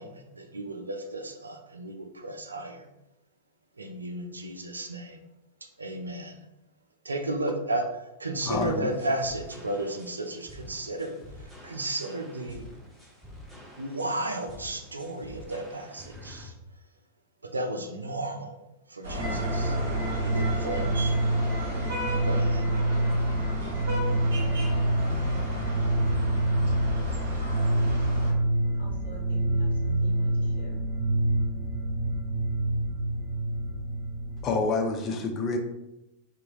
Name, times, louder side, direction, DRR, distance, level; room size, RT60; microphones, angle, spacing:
voice 1, 0.0-2.9 3.8-5.2 5.8-6.4 7.0-11.2 11.6-12.7 13.8-16.5 17.4-18.6 18.9-19.8 20.2-21.1 22.2-22.7, right 1 dB, 80° right, 5 dB, 0.3 m, -33 dB
voice 2, 8.5-8.9 34.4-35.6, left 3 dB, 30° left, 4 dB, 0.4 m, -27 dB
sound 1, 8.5-16.5, left 1 dB, ahead, 0.7 m, -48 dB
sound 2, 19.0-28.3, left 1 dB, 60° right, 1.2 m, -34 dB
sound 3, 19.2-34.4, right 1 dB, 25° right, 1.0 m, -27 dB
voice 3, 28.6-30.8, left 4 dB, 70° left, -2 dB, 0.9 m, -45 dB
2.7 x 2.4 x 2.9 m, 0.89 s
figure-of-eight pair, 90°, 0 cm